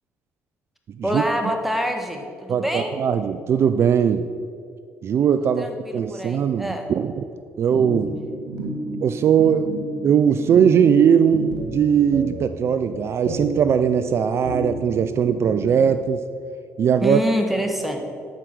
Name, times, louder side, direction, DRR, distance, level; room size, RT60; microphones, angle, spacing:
voice 1, 1.0-2.9 5.6-6.9 17.0-18.0, equal, 5° right, 3 dB, 1.5 m, -26 dB
voice 2, 2.5-4.2 5.0-7.2 7.6-8.2 9.0-9.7 10.0-16.2 16.8-17.2, right 8 dB, 55° right, 10 dB, 0.4 m, -19 dB
sound 1, 7.7-16.0, right 1 dB, 85° right, 1.9 m, -32 dB
11.5 x 4.7 x 6.2 m, 2.4 s
supercardioid pair, 75°, 5 cm